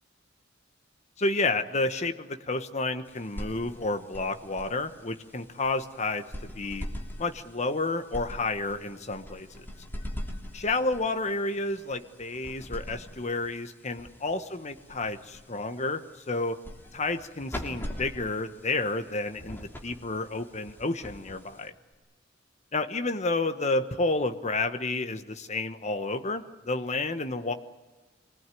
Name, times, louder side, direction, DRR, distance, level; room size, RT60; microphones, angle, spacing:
voice 1, 1.2-6.9 7.2-9.7 10.5-16.6 16.9-21.7 22.7-27.5, left 2 dB, 35° left, 8 dB, 1.2 m, -30 dB
Old Mailbox Small Flap Rotary Crank Mechanical, 3.0-21.9, equal, 10° left, 2.9 m, -43 dB
25.5 x 19.5 x 9.3 m, 1.2 s
head